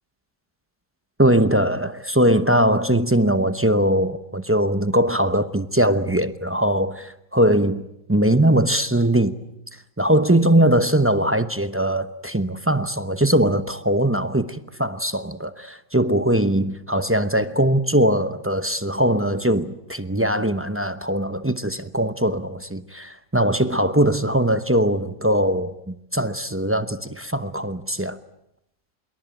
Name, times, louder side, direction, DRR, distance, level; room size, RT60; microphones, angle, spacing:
voice 1, 1.2-7.8 8.1-9.4 10.0-28.2, right 1 dB, 15° right, 0.5 m, -21 dB
26.5 x 23.0 x 9.1 m
omnidirectional pair, 1.9 m